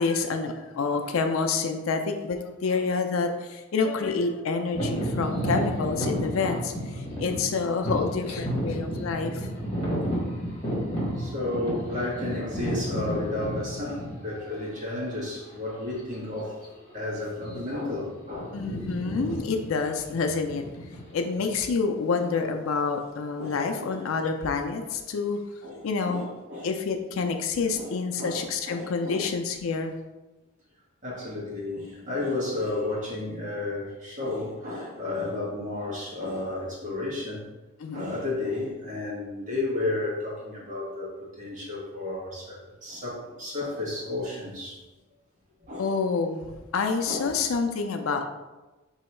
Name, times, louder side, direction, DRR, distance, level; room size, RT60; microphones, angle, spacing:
voice 1, 0.0-9.5 18.5-20.6 21.1-25.4 25.8-26.3 26.6-29.9 37.8-38.2 45.8-48.2, left 4 dB, 75° left, 5 dB, 0.4 m, -28 dB
sound 1, 4.7-14.5 15.1-15.3 15.9-16.1 16.4-16.6 17.3-17.9 18.1-21.5, equal, 30° left, 1.4 m, -31 dB
voice 2, 11.0-16.6 16.9-18.6 23.4-24.0 25.6-25.8 26.0-26.7 27.7-27.9 28.2-29.3 31.0-37.4 37.9-44.8 45.6-45.9 47.1-47.3, left 2 dB, 40° right, -5 dB, 1.3 m, -33 dB
3.0 x 2.7 x 4.3 m, 1.1 s
head